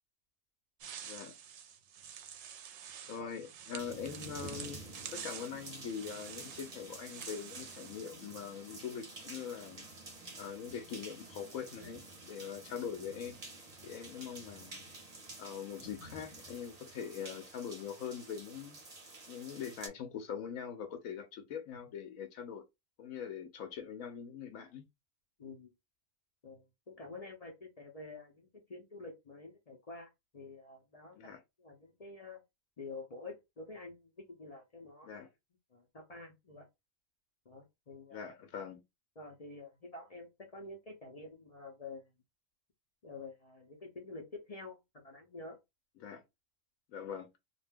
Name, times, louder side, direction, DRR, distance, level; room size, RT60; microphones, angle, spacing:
sound 1, 0.8-8.1, right 8 dB, 65° right, 0.8 m, -48 dB
voice 1, 3.1-4.8 5.1-9.9 10.4-13.4 13.8-14.8 15.4-18.8 19.3-22.6 23.0-24.9 31.1-31.4 35.0-35.3 38.1-38.8 46.0-46.2 46.9-47.3, left 7 dB, 85° left, 1.0 m, -43 dB
sound 2, 3.8-19.9, right 2 dB, 35° right, 0.8 m, -50 dB
voice 2, 25.4-25.7 26.4-31.3 31.6-32.4 32.8-35.3 35.7-36.7 37.5-38.3 39.2-42.1 43.0-45.6, left 3 dB, 50° left, 0.4 m, -49 dB
2.5 x 2.2 x 3.3 m
omnidirectional pair, 1.4 m